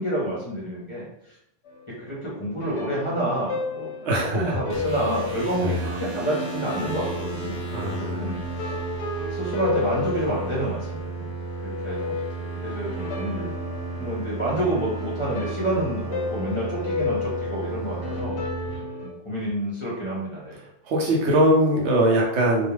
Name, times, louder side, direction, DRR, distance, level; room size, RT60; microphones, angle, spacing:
voice 1, 0.0-1.4 1.9-3.9 4.2-8.7 9.3-11.3 11.6-13.5 14.0-18.4 19.0-20.6, right 1 dB, 30° left, -7 dB, 0.6 m, -29 dB
sound 1, 1.6-19.1, left 4 dB, 65° left, 0.8 m, -33 dB
voice 2, 4.0-4.6 5.6-5.8 7.7-8.3 20.9-22.7, right 1 dB, 65° right, -2 dB, 0.8 m, -21 dB
sound 2, 4.7-18.8, right 4 dB, 20° right, 0.7 m, -34 dB
2.4 x 2.3 x 3.1 m, 0.78 s
omnidirectional pair, 1.3 m